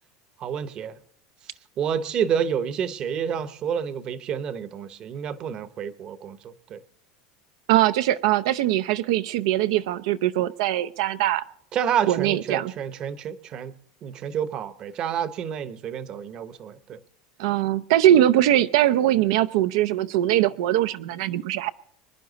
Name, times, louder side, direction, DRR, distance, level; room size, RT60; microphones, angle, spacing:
voice 1, 0.4-1.0 1.8-6.8 11.7-13.7 14.0-17.0, right 8 dB, 30° right, 0.9 m, -29 dB
voice 2, 7.7-11.4 12.1-12.7 17.4-21.7, right 13 dB, 75° right, 0.5 m, -21 dB
25.5 x 10.5 x 4.0 m
cardioid pair, 165°, 3 cm